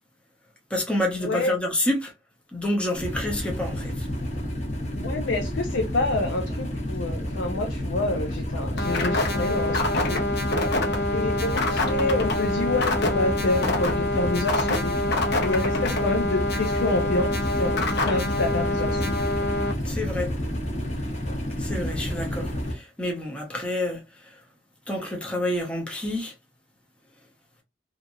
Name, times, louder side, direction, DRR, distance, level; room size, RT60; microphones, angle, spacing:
voice 1, 0.7-2.1 2.5-4.1 15.4-15.6 19.8-20.4 21.6-24.4 24.9-26.3, left 1 dB, 5° left, 0.7 m, -28 dB
voice 2, 1.2-1.5 5.0-10.2 11.1-15.1 15.4-19.2, left 2 dB, 85° left, 0.5 m, -28 dB
sound 1, 2.9-22.7, equal, 40° left, 1.0 m, -30 dB
sound 2, 8.8-19.7, left 2 dB, 65° left, 0.9 m, -26 dB
2.9 x 2.5 x 2.6 m
head